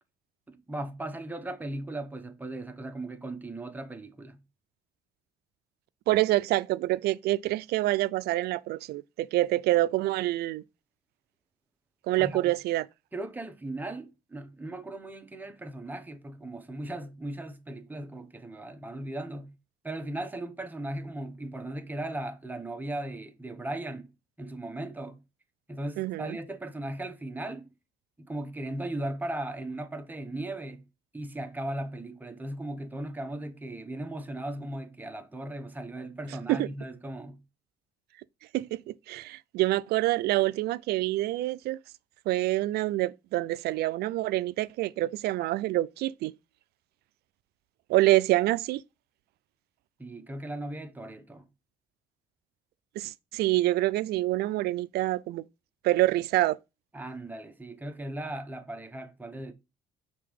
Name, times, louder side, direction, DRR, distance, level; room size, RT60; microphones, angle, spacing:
voice 1, 0.5-4.4 12.2-12.5 13.1-19.6 19.8-24.1 24.4-25.2 25.7-27.7 28.2-30.9 31.1-37.4 50.0-51.5 56.9-59.5, right 1 dB, 10° right, 0.8 m, -37 dB
voice 2, 6.1-10.6 12.1-12.9 26.0-26.4 36.5-36.7 38.5-41.8 42.3-46.3 47.9-48.8 53.0-55.4 55.8-56.6, right 17 dB, 70° right, 0.4 m, -26 dB
5.8 x 3.5 x 5.1 m
cardioid pair, 110°, 17 cm